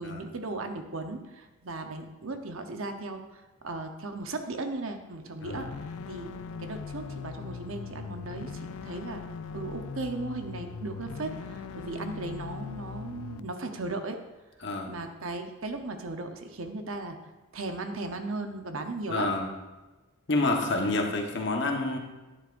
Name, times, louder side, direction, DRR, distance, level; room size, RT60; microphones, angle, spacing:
voice 1, 0.0-5.7 6.1-6.3 6.6-9.2 9.5-14.2 14.9-17.2 17.5-19.3, right 2 dB, 70° right, 6 dB, 0.9 m, -36 dB
voice 2, 5.4-5.7 14.6-14.9 19.1-19.5 20.3-22.0, left 2 dB, 55° left, 2 dB, 1.2 m, -28 dB
sound 1, 5.5-13.4, left 5 dB, 85° left, 0.4 m, -40 dB
11.5 x 9.9 x 2.6 m, 1.2 s
head